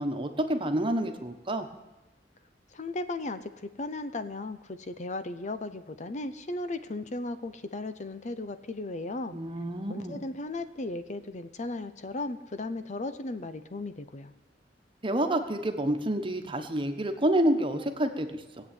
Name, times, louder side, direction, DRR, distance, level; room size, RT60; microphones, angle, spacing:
voice 1, 0.0-1.7 9.3-10.2 15.0-18.4, right 1 dB, 30° right, 6 dB, 1.3 m, -28 dB
voice 2, 2.7-9.4 9.9-14.3, left 2 dB, 40° left, 11 dB, 0.8 m, -36 dB
18.5 x 8.1 x 9.1 m, 1.1 s
head